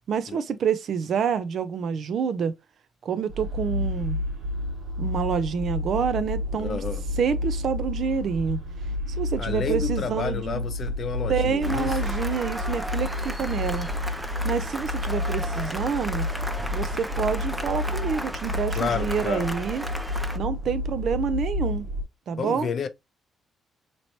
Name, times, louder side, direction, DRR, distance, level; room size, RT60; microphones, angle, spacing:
voice 1, 0.0-2.5 3.0-4.2 5.0-6.8 7.2-8.6 9.2-10.6 11.3-13.9 14.4-16.3 16.7-19.8 20.3-21.9 22.3-22.7, right 7 dB, 60° right, 0.5 m, -27 dB
sound 1, 3.3-22.0, left 1 dB, 85° right, 1.6 m, -30 dB
voice 2, 6.6-7.0 9.4-12.1 18.8-19.6 22.4-22.9, left 6 dB, 55° left, 0.5 m, -30 dB
Cheering / Applause, 11.6-20.4, equal, 5° right, 0.4 m, -35 dB
3.0 x 3.0 x 2.7 m
cardioid pair, 90°, 0 cm